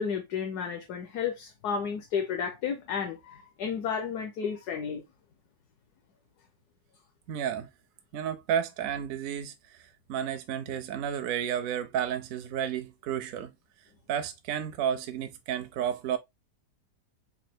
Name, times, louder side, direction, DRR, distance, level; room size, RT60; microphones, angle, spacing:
voice 1, 0.0-5.0, left 6 dB, 70° left, 1.3 m, -32 dB
voice 2, 7.3-7.7 8.1-13.5 14.1-16.2, right 9 dB, 65° right, 0.9 m, -32 dB
4.3 x 2.6 x 4.4 m
omnidirectional pair, 1.9 m